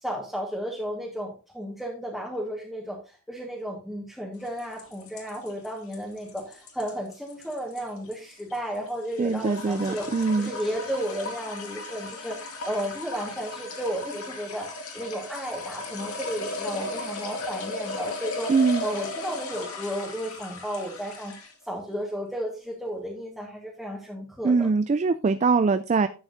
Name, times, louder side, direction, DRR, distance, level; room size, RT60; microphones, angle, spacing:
voice 1, 0.0-24.7, equal, ahead, -3 dB, 1.5 m, -33 dB
sound 1, 4.4-21.6, left 2 dB, 80° left, 2.1 m, -36 dB
voice 2, 9.2-10.5 18.5-18.8 24.4-26.1, right 4 dB, 30° right, 11 dB, 0.3 m, -22 dB
11.5 x 7.4 x 2.6 m, 0.35 s
head